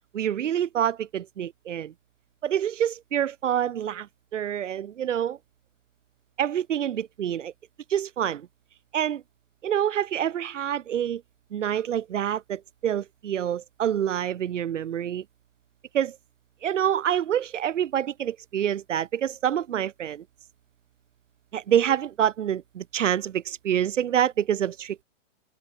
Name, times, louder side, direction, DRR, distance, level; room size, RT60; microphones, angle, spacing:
voice 1, 0.1-1.9 2.4-5.4 6.4-7.5 7.9-8.5 8.9-9.2 9.6-11.2 11.5-15.2 15.9-16.2 16.6-20.2 21.5-25.0, right 10 dB, 70° right, 4.5 m, -27 dB
open air
hypercardioid pair, 155°, 38 cm